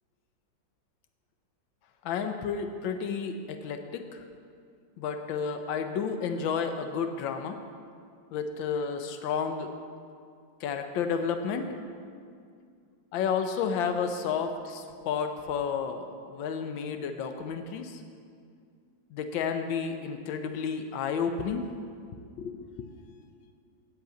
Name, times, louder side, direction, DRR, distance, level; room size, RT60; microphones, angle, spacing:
voice 1, 2.0-4.2 5.0-7.6 8.3-9.7 10.6-11.7 13.1-18.0 19.1-21.7 22.4-22.9, left 6 dB, 90° left, 7 dB, 1.5 m, -31 dB
7.8 x 7.6 x 8.1 m, 2.2 s
omnidirectional pair, 2.0 m